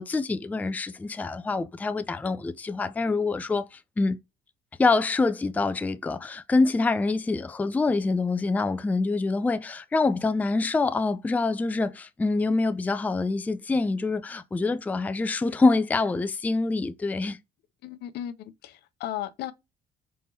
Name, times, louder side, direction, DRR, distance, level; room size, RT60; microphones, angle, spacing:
voice 1, 0.0-4.2 4.8-17.4, left 3 dB, 10° left, 0.3 m, -25 dB
voice 2, 17.8-19.5, left 12 dB, 75° left, 0.6 m, -35 dB
4.3 x 3.6 x 2.7 m
cardioid pair, 110°, 17 cm